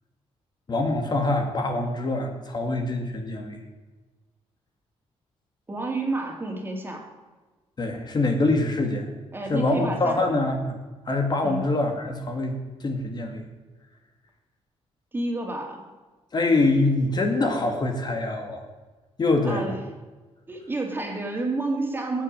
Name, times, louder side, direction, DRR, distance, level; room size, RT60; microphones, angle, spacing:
voice 1, 0.7-3.6 7.8-9.1 9.5-10.7 11.1-13.4 16.3-18.6 19.2-19.7, left 2 dB, 40° left, 4 dB, 2.2 m, -24 dB
voice 2, 5.7-7.1 9.3-10.2 11.4-11.6 15.1-15.8 19.4-19.8 20.5-22.2, right 2 dB, 20° right, 2 dB, 3.1 m, -30 dB
17.5 x 7.6 x 9.1 m, 1.2 s
cardioid pair, 115°, 11 cm